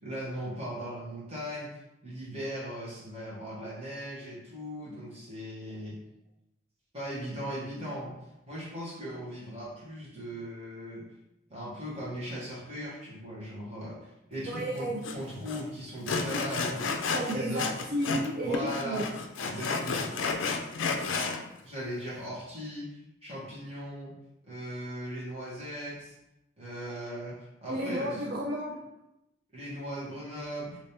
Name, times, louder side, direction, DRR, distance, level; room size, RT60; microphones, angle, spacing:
voice 1, 0.0-6.0 6.9-8.2 8.5-11.0 11.5-17.1 17.3-17.7 18.4-19.1 19.4-20.1 21.6-24.1 24.4-26.1 26.6-28.2 29.5-30.8, equal, 30° right, -8 dB, 1.3 m, -38 dB
voice 2, 14.5-15.0 17.1-19.1 20.8-21.3 27.7-28.8, right 1 dB, 50° right, -3 dB, 0.4 m, -33 dB
Sawing, 15.0-15.1 15.5-15.6 16.1-18.3 18.5-21.4, left 4 dB, 70° left, 0.4 m, -31 dB
3.4 x 3.0 x 2.9 m, 0.89 s
head